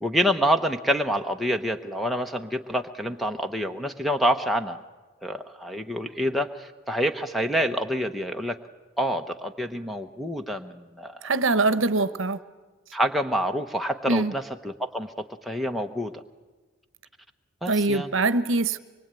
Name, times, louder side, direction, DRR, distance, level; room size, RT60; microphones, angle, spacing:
voice 1, 0.0-4.8 5.2-8.6 9.0-11.3 12.9-16.2 17.6-18.1, equal, ahead, 3 dB, 0.9 m, -27 dB
voice 2, 11.2-12.4 14.1-14.3 17.7-18.8, right 3 dB, 60° right, 14 dB, 1.0 m, -23 dB
24.5 x 22.5 x 9.0 m, 1.3 s
head